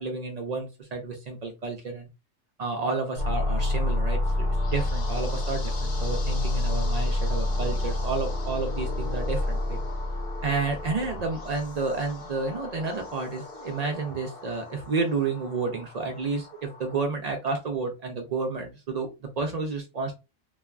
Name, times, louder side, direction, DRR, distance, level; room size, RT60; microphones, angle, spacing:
voice 1, 0.0-2.1 2.6-9.8 10.4-19.1 19.4-20.1, right 4 dB, 85° right, 3 dB, 0.3 m, -31 dB
sound 1, 3.2-17.0, left 1 dB, 55° left, 0.8 m, -30 dB
2.7 x 2.3 x 2.2 m, 0.27 s
omnidirectional pair, 1.3 m